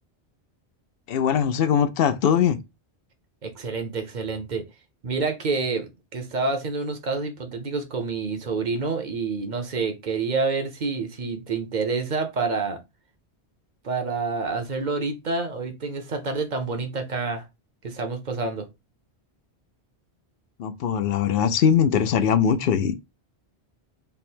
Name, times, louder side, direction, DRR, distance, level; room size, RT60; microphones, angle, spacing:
voice 1, 1.1-2.6 20.6-23.0, left 8 dB, 65° left, 0.7 m, -21 dB
voice 2, 3.4-4.6 5.0-12.8 13.8-17.4 17.8-18.7, right 4 dB, 50° right, 0.8 m, -28 dB
3.4 x 2.1 x 4.2 m
omnidirectional pair, 1.1 m